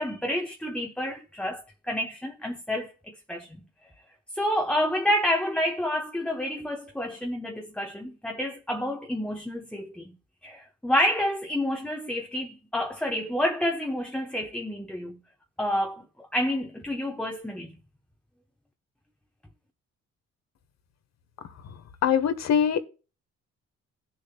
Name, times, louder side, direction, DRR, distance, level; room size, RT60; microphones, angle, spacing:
voice 1, 0.0-3.5 4.3-10.2 10.4-15.2 15.6-17.8, left 1 dB, 5° left, 1.0 m, -29 dB
voice 2, 21.6-22.8, left 8 dB, 60° left, 1.2 m, -24 dB
18.0 x 6.8 x 2.3 m
cardioid pair, 90°, 30 cm